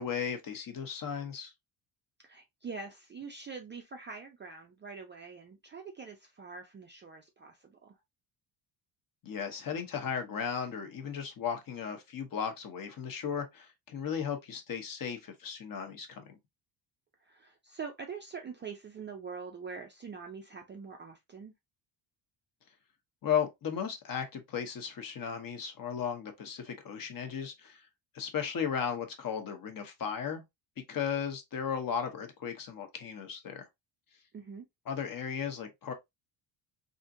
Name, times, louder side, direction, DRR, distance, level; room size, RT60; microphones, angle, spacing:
voice 1, 0.0-1.5 9.2-16.4 23.2-27.9 28.1-30.4 30.9-33.7 34.8-35.9, left 7 dB, 45° left, 0.8 m, -35 dB
voice 2, 2.2-7.9 17.2-21.5 34.3-34.6, right 5 dB, 25° right, 0.3 m, -44 dB
3.6 x 2.6 x 2.5 m
cardioid pair, 150°, 48 cm